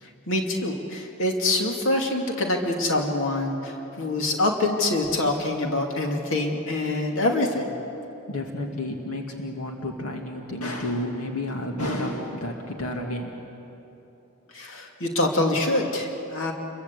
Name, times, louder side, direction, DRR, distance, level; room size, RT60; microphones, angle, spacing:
voice 1, 0.0-7.8 14.5-16.5, left 2 dB, 60° left, 1 dB, 2.6 m, -25 dB
voice 2, 8.3-13.3, left 1 dB, 80° left, 1 dB, 2.4 m, -31 dB
29.5 x 23.0 x 8.3 m, 3.0 s
head